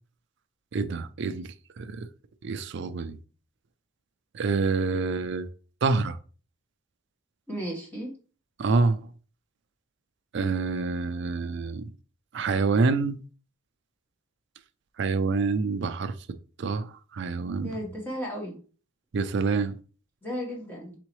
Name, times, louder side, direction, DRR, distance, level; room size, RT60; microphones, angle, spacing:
voice 1, 0.7-2.1 2.4-3.2 4.3-5.5 5.8-6.2 8.6-9.0 10.3-11.8 12.3-13.2 15.0-16.1 16.6-17.7 19.1-19.8, right 4 dB, 55° right, 0.4 m, -27 dB
voice 2, 7.5-8.1 17.6-18.6 20.2-20.9, equal, 10° left, 1.3 m, -34 dB
4.2 x 3.7 x 3.1 m
head